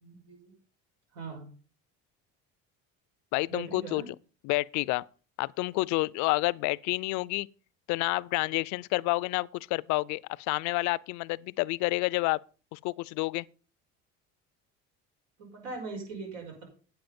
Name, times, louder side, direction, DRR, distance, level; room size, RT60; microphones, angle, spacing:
voice 1, 0.0-0.5 1.1-1.5 3.5-4.1 15.4-16.6, right 4 dB, 90° right, 5.5 m, -40 dB
voice 2, 3.3-4.0 4.4-5.0 5.4-7.5 7.9-12.4 12.7-13.4, left 22 dB, 70° left, 0.5 m, -29 dB
9.1 x 8.8 x 5.2 m
cardioid pair, 135°, 29 cm